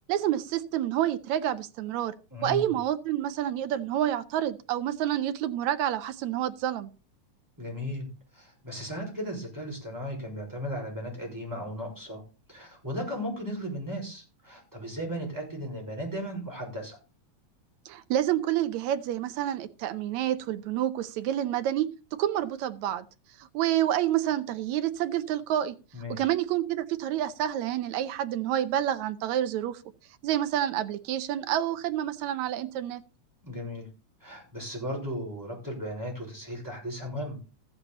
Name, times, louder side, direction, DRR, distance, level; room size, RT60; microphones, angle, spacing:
voice 1, 0.1-2.1 2.4-6.9 17.9-23.1 23.5-25.8 26.1-29.8 30.2-33.0, right 11 dB, 75° right, 2.1 m, -28 dB
voice 2, 2.3-2.7 7.6-8.1 8.3-12.2 12.5-17.0 25.9-26.3 33.4-33.9 34.2-37.4, equal, 5° right, 5.5 m, -36 dB
15.0 x 8.5 x 4.1 m
omnidirectional pair, 3.4 m